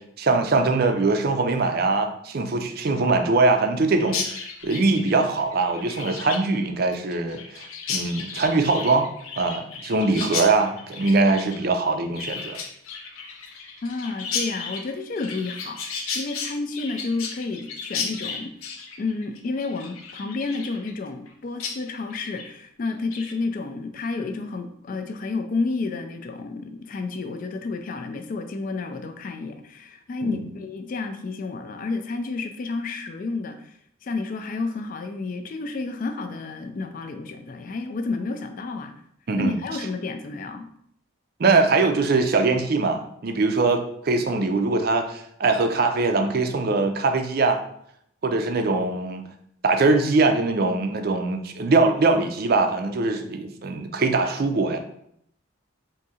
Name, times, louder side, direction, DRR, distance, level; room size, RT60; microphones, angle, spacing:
voice 1, 0.2-9.1 9.4-12.6 30.2-30.4 39.3-39.5 41.4-47.6 48.2-49.2 49.6-54.8, right 3 dB, 45° right, 6 dB, 0.4 m, -22 dB
Chirp tweet, 4.0-21.3 21.6-21.8 22.1-22.5 22.9-23.3, left 5 dB, 85° left, 0.6 m, -34 dB
voice 2, 13.8-18.5 19.0-38.9 39.4-40.7, left 3 dB, 40° left, 6 dB, 0.3 m, -31 dB
3.6 x 2.7 x 4.1 m, 0.71 s
head